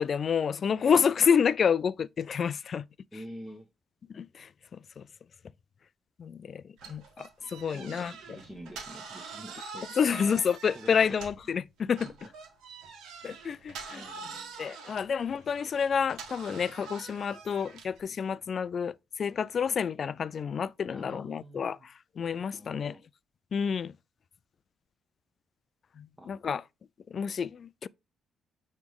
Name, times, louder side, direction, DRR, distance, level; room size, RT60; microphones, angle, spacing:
voice 1, 0.0-2.8 4.1-5.0 6.2-8.4 10.0-12.1 13.2-14.0 14.6-22.9 23.5-23.9 26.0-26.6 27.1-27.9, left 6 dB, 50° left, 0.3 m, -29 dB
voice 2, 3.1-3.7 7.4-10.4 10.7-11.2 12.0-12.1 13.3-13.6 13.9-14.6 20.9-21.9 22.5-23.0 26.2-26.4, equal, 15° right, 1.2 m, -47 dB
sound 1, 6.8-11.5 11.9-18.0, right 4 dB, 85° right, 1.4 m, -45 dB
9.2 x 3.2 x 3.6 m
cardioid pair, 90°, 0 cm